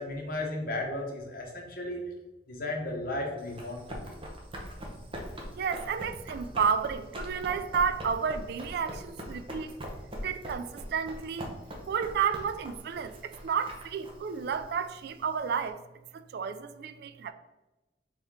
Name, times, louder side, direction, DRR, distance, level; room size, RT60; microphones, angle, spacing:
voice 1, 0.0-2.0 2.5-4.1, left 2 dB, 55° left, 1.0 m, -35 dB
Run, 3.4-15.7, equal, 30° right, 0.8 m, -42 dB
voice 2, 5.6-9.8 10.2-11.5 11.9-15.8 16.1-17.3, right 6 dB, 60° right, 0.3 m, -31 dB
4.2 x 3.4 x 3.5 m
head